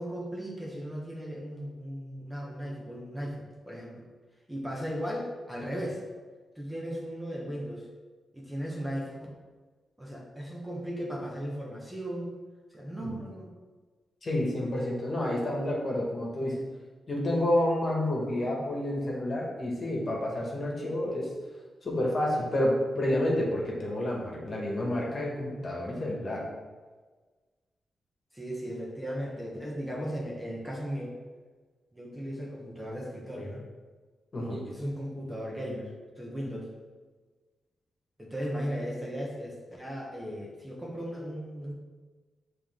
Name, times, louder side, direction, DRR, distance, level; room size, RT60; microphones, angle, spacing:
voice 1, 0.0-4.0 4.5-6.0 6.5-7.9 8.3-9.3 10.0-12.4 12.7-13.5 28.3-31.2 31.9-33.7 34.5-36.7 38.2-41.7, equal, 10° right, -3 dB, 1.4 m, -36 dB
voice 2, 14.2-16.6 17.1-21.3 21.8-26.5 34.3-34.6, left 1 dB, 45° left, -3 dB, 1.7 m, -29 dB
7.1 x 3.6 x 3.8 m, 1.3 s
cardioid pair, 80°, 0 cm